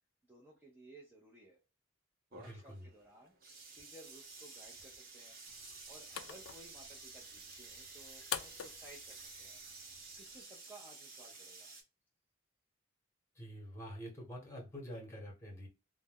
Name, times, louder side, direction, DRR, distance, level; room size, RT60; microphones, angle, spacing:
voice 1, 0.2-1.6 2.3-3.3 3.7-5.4 5.9-9.6 10.2-11.7, right 1 dB, 10° right, -4 dB, 0.6 m, -58 dB
sound 1, 2.3-11.8, right 3 dB, 45° right, 1.0 m, -52 dB
voice 2, 2.4-2.9 13.3-15.7, equal, 15° left, -1 dB, 1.1 m, -47 dB
sound 2, 5.5-10.5, left 10 dB, 90° left, 0.4 m, -47 dB
2.6 x 2.2 x 3.5 m, 0.31 s
head